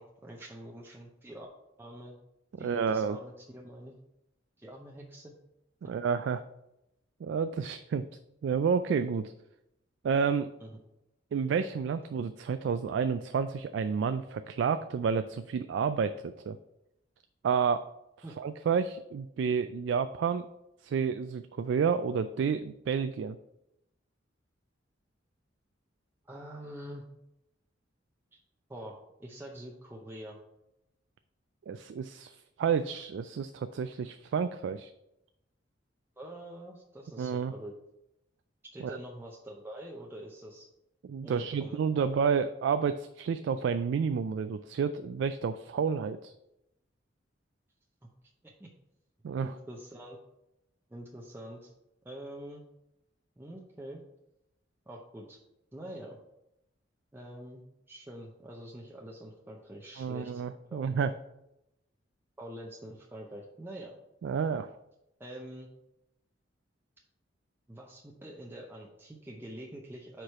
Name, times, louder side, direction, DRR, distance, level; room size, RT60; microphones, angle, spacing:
voice 1, 0.0-1.5 1.8-2.2 2.6-3.9 4.6-5.3 10.6-10.7 18.2-18.3 26.3-27.0 28.3-28.4 28.7-30.4 36.2-37.7 38.7-40.7 41.2-42.1 48.4-48.7 49.4-50.2 50.9-51.7 52.0-52.6 53.4-54.0 54.9-55.4 55.7-56.2 57.1-57.6 57.9-61.1 62.4-64.0 65.2-65.7 67.7-70.2, right 1 dB, 10° right, -2 dB, 0.6 m, -45 dB
voice 2, 2.6-3.2 5.9-6.4 7.2-8.0 8.4-9.3 10.0-10.5 11.3-16.6 17.4-17.9 18.4-20.5 20.8-23.4 31.7-34.9 37.2-37.5 38.8-39.0 41.1-46.3 49.2-49.5 60.0-61.1 64.2-64.7, right 6 dB, 70° right, 10 dB, 0.3 m, -30 dB
4.9 x 4.5 x 5.6 m, 0.86 s
head